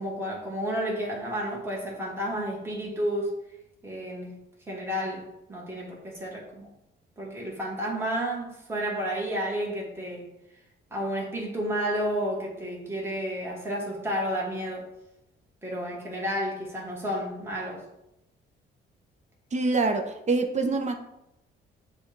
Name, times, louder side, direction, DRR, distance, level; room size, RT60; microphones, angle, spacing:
voice 1, 0.0-3.3 3.8-4.3 4.7-6.7 7.2-10.3 10.9-14.9 15.6-17.8, equal, 10° right, -4 dB, 1.5 m, -31 dB
voice 2, 19.5-20.9, right 3 dB, 35° right, 4 dB, 0.6 m, -25 dB
6.9 x 2.4 x 3.2 m, 0.86 s
cardioid pair, 90°, 20 cm